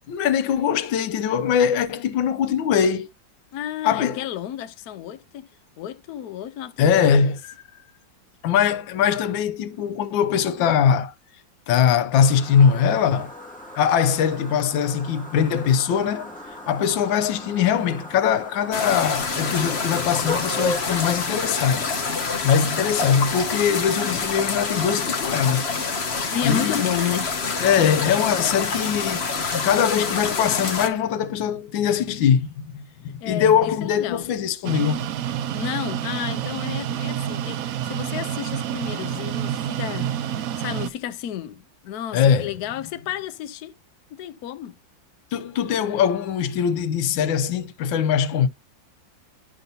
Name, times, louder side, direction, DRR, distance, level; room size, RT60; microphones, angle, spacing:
voice 1, 0.1-3.1 3.8-4.2 6.8-7.5 8.4-11.1 11.7-13.3 13.7-16.3 16.7-21.8 22.4-25.6 26.4-26.8 27.6-35.1 42.1-42.5 45.3-48.5, left 8 dB, 85° left, 1.5 m, -21 dB
voice 2, 3.5-5.5 5.8-7.3 26.3-27.4 33.2-34.2 35.5-43.7 44.1-44.8, left 10 dB, 65° left, 1.1 m, -32 dB
sound 1, 12.1-20.8, left 1 dB, 5° left, 1.9 m, -36 dB
sound 2, 18.7-30.9, left 4 dB, 40° left, 1.2 m, -27 dB
sound 3, 34.6-40.9, right 10 dB, 70° right, 0.8 m, -28 dB
11.0 x 5.3 x 2.7 m
omnidirectional pair, 2.0 m